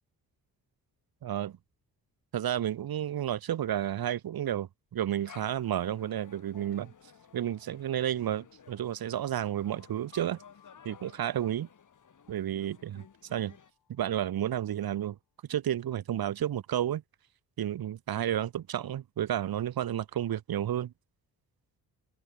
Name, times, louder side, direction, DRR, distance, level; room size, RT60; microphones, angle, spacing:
voice 1, 1.2-1.6 2.3-6.9 7.3-10.4 10.8-11.7 12.3-13.0 13.3-13.6 13.9-15.2 15.5-17.0 17.6-20.9, right 11 dB, 65° right, 1.4 m, -31 dB
sound 1, 5.1-13.7, left 6 dB, 50° left, 4.3 m, -56 dB
sound 2, 6.5-14.1, left 10 dB, 75° left, 7.9 m, -62 dB
open air
cardioid pair, 70°, 39 cm